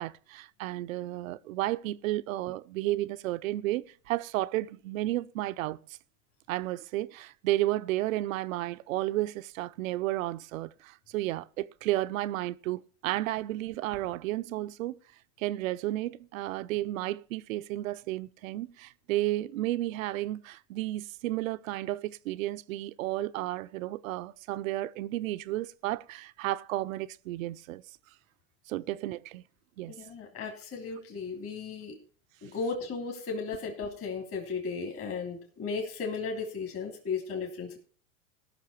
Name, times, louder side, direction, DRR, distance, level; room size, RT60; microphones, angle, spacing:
voice 1, 0.0-5.8 6.5-15.0 15.4-27.8 28.7-29.4 29.8-29.9, right 16 dB, 70° right, 0.7 m, -32 dB
voice 2, 29.9-32.0 32.4-37.8, left 5 dB, 30° left, 3.4 m, -35 dB
18.5 x 6.4 x 4.5 m
hypercardioid pair, 115°, 41 cm